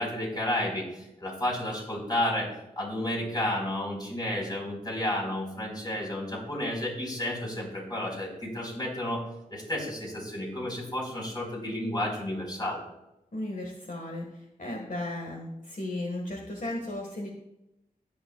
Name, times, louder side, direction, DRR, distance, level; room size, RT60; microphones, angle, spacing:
voice 1, 0.0-2.5 2.8-9.2 9.5-12.8, left 1 dB, 30° left, -2 dB, 4.3 m, -31 dB
voice 2, 13.3-14.2 14.6-17.3, left 1 dB, 65° left, 0 dB, 1.6 m, -35 dB
19.5 x 7.0 x 2.3 m, 0.88 s
wide cardioid pair, 60°, 15 cm